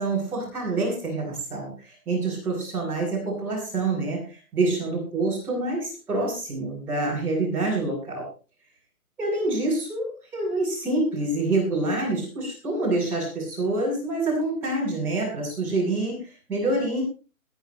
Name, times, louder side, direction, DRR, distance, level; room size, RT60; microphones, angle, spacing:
voice 1, 0.0-8.2 9.2-17.0, right 2 dB, 5° right, -11 dB, 8.0 m, -27 dB
22.0 x 11.0 x 3.3 m, 0.34 s
hypercardioid pair, 175°, 43 cm